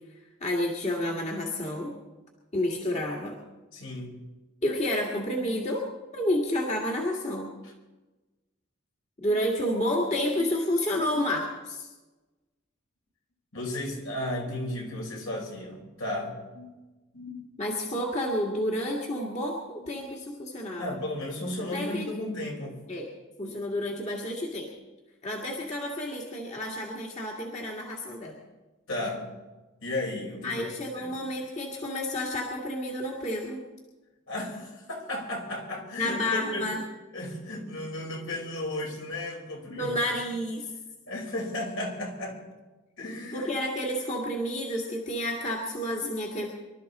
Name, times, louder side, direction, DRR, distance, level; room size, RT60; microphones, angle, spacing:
voice 1, 0.4-1.9 2.5-3.4 4.6-5.8 6.1-7.5 9.2-11.9 17.3-20.9 21.7-22.1 22.9-23.1 23.4-24.7 25.2-28.4 30.4-33.6 36.0-36.8 39.7-40.7 43.3-46.5, left 1 dB, 30° left, -1 dB, 1.8 m, -30 dB
voice 2, 3.7-4.2 7.6-7.7 9.2-9.4 13.5-16.7 17.1-17.4 19.8-19.9 20.8-22.8 28.9-29.3 29.8-30.7 31.0-31.1 34.3-36.7 37.1-39.9 41.1-42.4 43.0-43.5, left 1 dB, 70° left, -1 dB, 5.0 m, -34 dB
24.5 x 12.5 x 4.2 m, 1.2 s
head